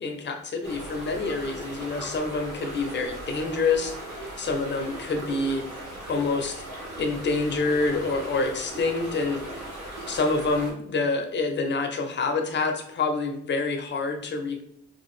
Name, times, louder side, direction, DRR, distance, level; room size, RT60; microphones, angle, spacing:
voice 1, 0.0-3.9 4.4-5.7 6.1-6.6 7.0-9.7 10.1-14.6, left 3 dB, 35° left, 5 dB, 0.5 m, -27 dB
sound 1, 0.6-10.7, right 1 dB, 60° right, 1.1 m, -38 dB
2.7 x 2.5 x 3.1 m, 0.72 s
cardioid pair, 90°, 30 cm